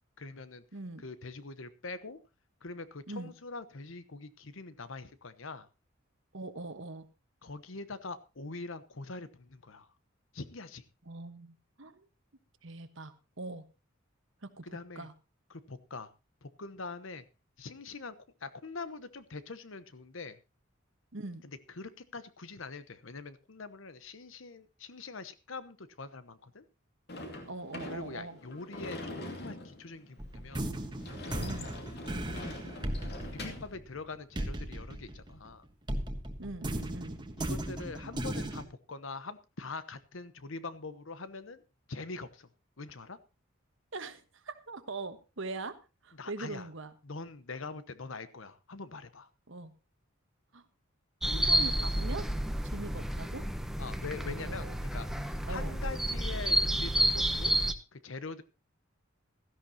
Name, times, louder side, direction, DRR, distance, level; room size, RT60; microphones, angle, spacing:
voice 1, 0.2-0.6 1.0-2.2 2.6-5.7 7.4-9.9 10.3-10.8 14.6-15.1 15.5-16.1 16.4-17.2 17.6-20.4 21.4-26.6 27.9-30.7 32.3-32.6 33.3-35.6 37.4-41.6 41.9-42.5 42.8-43.2 46.1-46.7 47.0-49.3 53.8-57.6 57.9-58.4, left 3 dB, 70° left, 13 dB, 1.0 m, -43 dB
voice 2, 0.7-1.0 3.1-3.3 6.3-7.1 11.1-12.1 12.6-13.6 14.4-14.6 14.9-15.1 21.1-21.4 27.5-28.4 31.4-31.7 36.4-37.2 43.9-45.8 46.0-46.9 49.5-49.7 50.5-50.6 51.2-52.3 52.6-53.4 54.1-54.7 55.4-55.7, right 2 dB, 65° right, 10 dB, 1.3 m, -42 dB
Sliding door / Slam, 27.1-33.7, left 1 dB, 55° left, 2.5 m, -43 dB
sound 1, 30.2-35.5 35.9-38.6, right 1 dB, 20° right, 1.4 m, -36 dB
sound 2, 51.2-57.7, right 1 dB, ahead, 0.9 m, -30 dB
16.5 x 13.0 x 2.9 m, 0.28 s
head